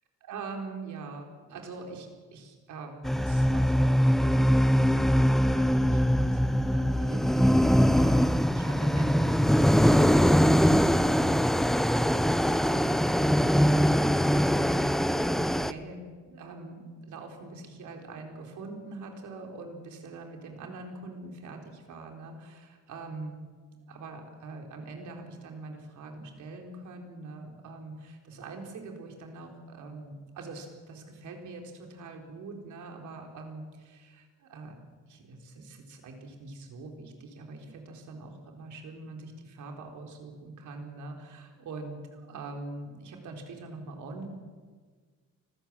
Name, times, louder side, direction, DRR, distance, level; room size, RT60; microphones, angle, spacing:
voice 1, 0.3-23.4 23.9-34.7 35.1-44.3, right 3 dB, 75° right, 2 dB, 4.3 m, -43 dB
sound 1, 3.0-15.7, equal, ahead, 0.8 m, -22 dB
24.5 x 16.0 x 7.6 m, 1.5 s
cardioid pair, 90°, 30 cm